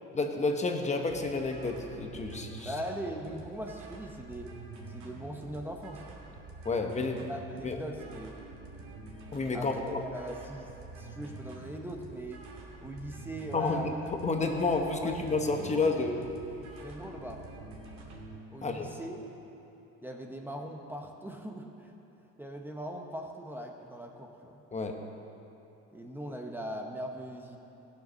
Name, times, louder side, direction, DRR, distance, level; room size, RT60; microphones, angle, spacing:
voice 1, 0.1-2.8 6.6-7.3 7.6-7.8 9.3-10.0 13.5-16.2 18.6-18.9 24.7-25.0, left 3 dB, 25° left, 3 dB, 1.0 m, -30 dB
sound 1, 1.1-18.4, right 3 dB, 70° right, 2.5 m, -47 dB
voice 2, 2.6-4.5 4.9-6.0 6.7-6.9 7.3-8.4 9.5-12.5 12.8-14.1 14.4-15.3 15.6-15.9 16.8-17.4 18.5-19.2 20.0-21.9 22.4-24.6 25.9-27.6, equal, 5° right, 1 dB, 0.9 m, -40 dB
16.0 x 6.7 x 6.3 m, 2.9 s
cardioid pair, 115°, 29 cm